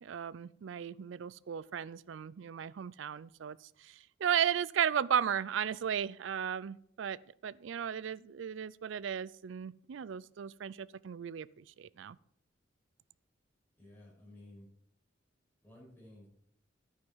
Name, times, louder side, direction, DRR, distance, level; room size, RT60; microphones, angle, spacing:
voice 1, 0.0-7.2 7.4-12.2, right 8 dB, 70° right, 20 dB, 0.4 m, -35 dB
voice 2, 13.8-14.7 15.6-16.3, left 1 dB, 10° left, -4 dB, 5.5 m, -54 dB
11.0 x 9.2 x 4.6 m, 0.71 s
head